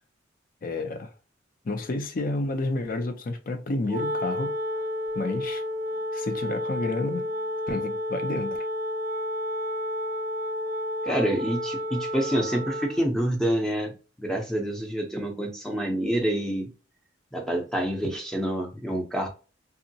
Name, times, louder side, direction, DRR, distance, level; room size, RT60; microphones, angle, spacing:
voice 1, 0.6-1.1 1.6-4.6 5.1-5.6 6.1-7.3 7.7-8.7, left 2 dB, 45° left, 0.5 m, -30 dB
Wind instrument woodwind instrument, 3.8-13.1, left 1 dB, 45° right, 0.3 m, -31 dB
voice 2, 11.0-13.9 14.2-16.7 17.3-19.3, right 1 dB, 5° left, 0.6 m, -27 dB
3.6 x 2.0 x 2.7 m
head